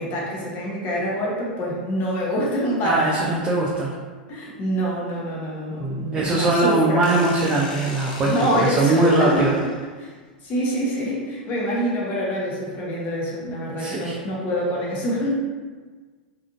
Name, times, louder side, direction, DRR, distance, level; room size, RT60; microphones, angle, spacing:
voice 1, 0.0-3.3 4.3-7.1 8.2-10.1 10.4-15.3, equal, 35° left, -4 dB, 0.9 m, -26 dB
voice 2, 2.8-3.9 5.8-9.5 13.8-14.1, right 2 dB, 20° right, -5 dB, 0.5 m, -21 dB
sound 1, 7.0-9.9, left 3 dB, 55° left, 0.6 m, -39 dB
3.6 x 2.5 x 2.4 m, 1.4 s
figure-of-eight pair, 95°, 5 cm